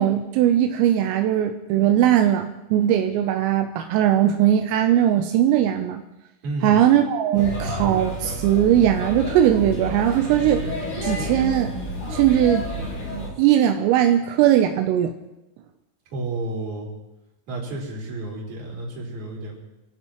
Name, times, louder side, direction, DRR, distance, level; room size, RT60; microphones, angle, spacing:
voice 1, 0.0-6.0 6.6-10.7 11.0-11.8 12.1-12.7 13.4-15.1, right 11 dB, 85° right, 5 dB, 3.4 m, -19 dB
voice 2, 6.4-6.8 16.1-16.9 17.5-19.6, right 2 dB, 40° right, -3 dB, 4.9 m, -31 dB
Male speech man speaking / Child speech kid speaking / Chatter, 7.3-13.3, left 1 dB, 45° left, 7.8 m, -30 dB
28.0 x 15.5 x 3.1 m, 0.96 s
omnidirectional pair, 5.9 m